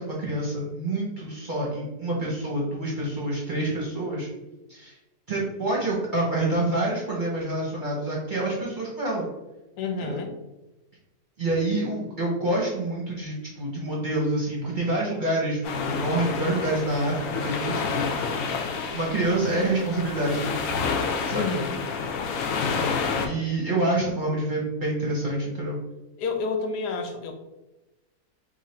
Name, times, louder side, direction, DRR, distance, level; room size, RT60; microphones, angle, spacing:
voice 1, 0.0-4.3 4.7-5.0 5.3-9.3 10.0-10.2 11.4-18.1 18.9-20.8 21.2-21.5 23.2-25.8, right 2 dB, 45° right, -4 dB, 0.7 m, -27 dB
voice 2, 9.8-10.3 21.3-21.8 26.2-27.3, left 4 dB, 90° left, 4 dB, 1.2 m, -29 dB
sound 1, 15.6-23.3, left 5 dB, 70° left, 0.9 m, -29 dB
3.1 x 2.5 x 4.2 m, 1.0 s
omnidirectional pair, 1.7 m